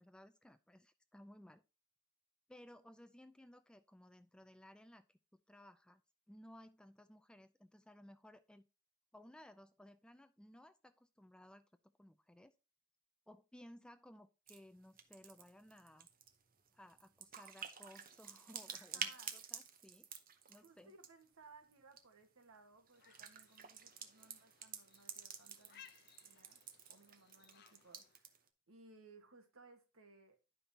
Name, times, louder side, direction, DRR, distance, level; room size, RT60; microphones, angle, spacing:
voice 1, 0.0-1.6 2.5-6.0 6.3-8.7 9.1-12.5 13.3-16.1 16.7-20.1 20.5-20.9, left 1 dB, 5° left, 0.3 m, -60 dB
sound 1, 14.5-14.6 14.8-21.3 21.7-22.0 22.9-28.5, right 8 dB, 40° right, 0.8 m, -50 dB
voice 2, 18.7-19.5 20.5-25.9 26.2-26.6 26.9-30.4, right 3 dB, 75° right, 1.6 m, -63 dB
sound 2, 22.9-28.2, left 9 dB, 50° left, 0.7 m, -65 dB
11.0 x 5.3 x 2.8 m
head